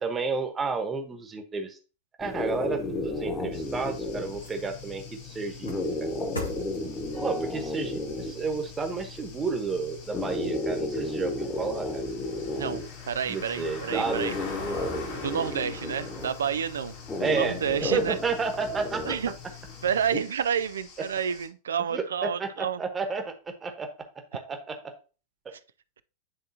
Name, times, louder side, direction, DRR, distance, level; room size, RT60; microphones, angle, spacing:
voice 1, 0.0-1.8 2.2-6.1 7.1-12.0 13.3-14.3 17.2-17.6 17.9-19.1 21.9-22.0 22.4-23.3 23.6-23.9 24.3-24.8, right 4 dB, 20° right, 1.1 m, -31 dB
sound 1, 2.2-20.2, left 2 dB, 20° left, 1.2 m, -34 dB
sound 2, 3.5-21.5, left 3 dB, 55° left, 1.8 m, -45 dB
sound 3, 3.6-9.9 10.3-10.4, left 2 dB, 80° left, 1.3 m, -45 dB
voice 2, 13.1-14.4 14.7-14.9 15.2-18.2 19.0-19.4 19.8-22.8 25.5-25.6, right 8 dB, 65° right, 0.3 m, -30 dB
9.8 x 3.6 x 2.8 m
figure-of-eight pair, 90°, 0 cm